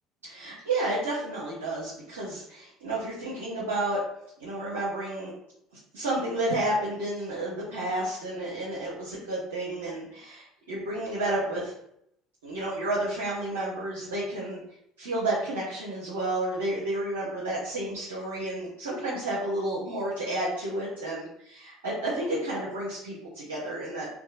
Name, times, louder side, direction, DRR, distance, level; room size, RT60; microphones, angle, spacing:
voice 1, 0.2-4.0 4.4-5.3 5.9-11.7 12.4-14.6 15.0-24.1, right 1 dB, 85° right, -7 dB, 0.6 m, -31 dB
2.7 x 2.2 x 2.4 m, 0.74 s
hypercardioid pair, 65°, 0 cm